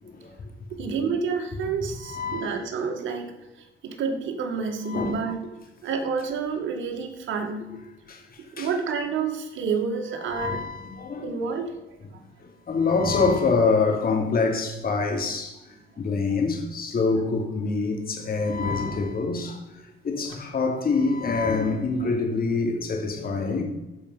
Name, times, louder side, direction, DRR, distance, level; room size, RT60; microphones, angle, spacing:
voice 1, 0.0-0.3 2.1-2.6 4.9-5.2 8.1-8.7 10.3-11.5 12.4-15.6 16.0-19.6 20.0-23.6, left 4 dB, 50° left, 2.8 m, -25 dB
voice 2, 0.8-5.5 5.8-7.7 8.5-10.6 11.0-12.2 15.9-16.0, right 5 dB, 75° right, 2.0 m, -29 dB
14.0 x 5.3 x 5.6 m
cardioid pair, 90°, 20 cm